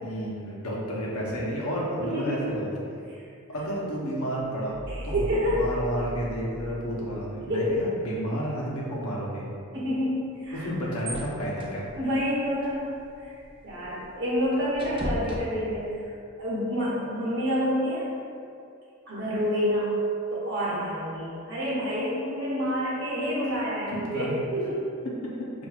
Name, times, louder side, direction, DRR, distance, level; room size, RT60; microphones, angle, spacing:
voice 1, 0.0-2.7 3.5-4.8 5.0-5.3 5.6-9.5 10.5-11.9 23.9-24.3 25.2-25.5, equal, 80° left, -5 dB, 0.9 m, -31 dB
voice 2, 2.0-2.5 3.1-3.2 4.9-5.6 7.5-7.9 9.7-10.7 11.9-13.0 13.2-13.4 13.6-16.0 16.4-18.1 19.1-19.9 20.3-24.8, equal, 50° right, -7 dB, 1.0 m, -28 dB
sound 1, 4.7-8.0, equal, 5° left, 1.0 m, -38 dB
sound 2, 10.3-16.1, equal, 25° right, 0.4 m, -39 dB
5.8 x 2.6 x 2.4 m, 2.4 s
head